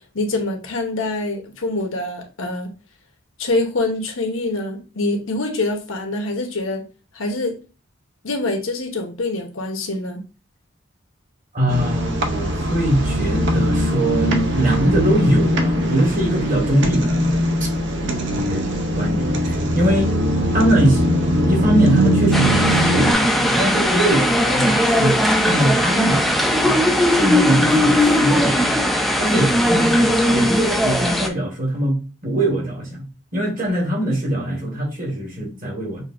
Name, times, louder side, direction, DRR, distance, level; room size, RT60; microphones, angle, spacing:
voice 1, 0.0-2.7 3.4-6.8 7.1-7.5 8.2-10.2, left 2 dB, 85° left, 1.0 m, -25 dB
voice 2, 11.5-17.3 18.4-18.6 18.9-20.1 20.5-26.8 27.2-28.7 29.2-33.0 33.3-36.0, right 1 dB, 40° right, 1.7 m, -22 dB
sound 1, 11.7-23.1, equal, 60° right, 0.7 m, -21 dB
sound 2, 22.3-31.3, left 1 dB, ahead, 0.4 m, -18 dB
6.5 x 2.7 x 2.5 m
head